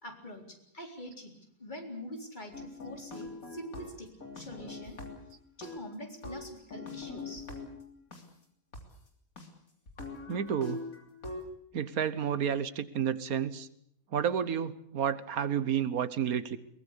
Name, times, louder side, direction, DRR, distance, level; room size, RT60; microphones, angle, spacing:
voice 1, 0.0-1.3 1.6-4.1 4.3-5.0 5.6-7.4, equal, 35° left, 3 dB, 4.1 m, -44 dB
sound 1, 2.5-5.3 5.6-8.2 8.7-8.8 9.4-9.5 9.9-11.5, left 3 dB, 80° left, 3.7 m, -43 dB
voice 2, 10.3-10.8 11.7-13.7 14.1-16.6, right 8 dB, 90° right, 14 dB, 1.6 m, -30 dB
22.5 x 19.5 x 8.2 m, 0.67 s
omnidirectional pair, 1.5 m